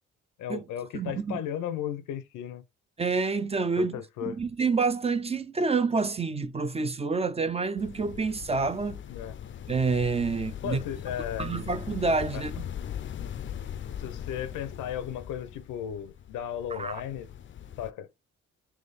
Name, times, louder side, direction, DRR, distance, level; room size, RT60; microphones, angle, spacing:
voice 1, 0.4-2.6 3.8-4.4 9.1-9.4 10.6-11.5 12.3-12.4 14.0-17.3 17.8-18.1, left 10 dB, 90° left, 0.7 m, -35 dB
voice 2, 0.9-1.4 3.0-4.0 4.3-9.0 9.7-10.8 11.4-12.7 16.7-17.0, right 4 dB, 20° right, 0.4 m, -28 dB
sound 1, 7.8-17.9, left 9 dB, 40° left, 0.4 m, -40 dB
3.6 x 3.1 x 4.0 m
cardioid pair, 90°, 30 cm